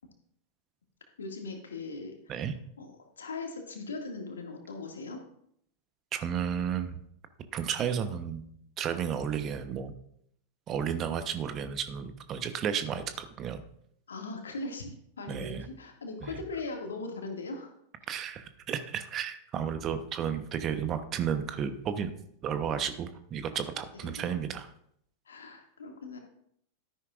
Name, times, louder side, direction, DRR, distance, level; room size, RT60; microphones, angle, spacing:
voice 1, 1.2-2.4 2.8-2.9 3.2-5.2 14.1-17.7 24.0-24.3 25.3-26.2, left 3 dB, 70° left, 2 dB, 2.2 m, -39 dB
voice 2, 6.1-7.0 7.5-8.4 8.8-9.9 10.7-13.6 15.3-15.7 16.2-16.4 18.1-22.1 22.4-24.7, right 8 dB, 30° right, 10 dB, 1.0 m, -32 dB
13.0 x 10.5 x 2.5 m, 0.69 s
figure-of-eight pair, 90°, 0 cm